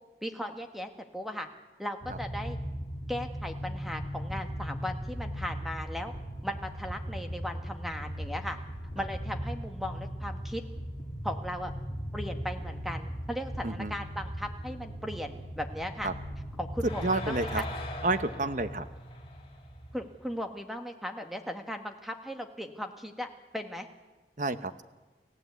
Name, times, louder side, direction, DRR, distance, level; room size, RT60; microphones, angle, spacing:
voice 1, 0.2-1.5 1.8-2.6 3.1-6.1 6.4-8.6 8.9-10.6 11.2-11.7 12.1-16.1 16.6-17.7 19.9-23.3 23.5-23.9, equal, ahead, 5 dB, 1.5 m, -37 dB
sound 1, 2.0-20.3, equal, 30° left, 2.7 m, -38 dB
voice 2, 17.0-17.6 18.0-18.9 24.4-24.8, right 2 dB, 45° right, 11 dB, 1.0 m, -30 dB
30.0 x 15.5 x 8.3 m, 1.2 s
head